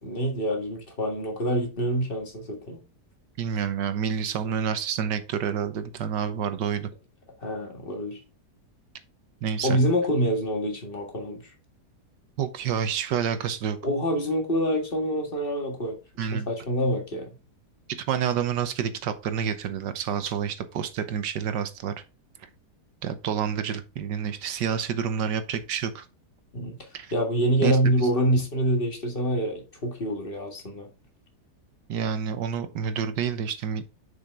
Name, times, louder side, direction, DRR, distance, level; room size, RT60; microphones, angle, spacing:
voice 1, 0.0-2.8 7.4-8.2 9.6-11.4 13.8-17.3 26.5-26.8 27.1-30.9, right 1 dB, 35° left, 1.9 m, -26 dB
voice 2, 3.4-6.9 9.4-9.8 12.4-13.8 16.2-16.5 18.1-21.9 23.0-26.0 26.9-27.1 27.6-27.8 31.9-33.8, right 7 dB, 90° right, 1.6 m, -28 dB
6.7 x 5.7 x 3.7 m
omnidirectional pair, 1.8 m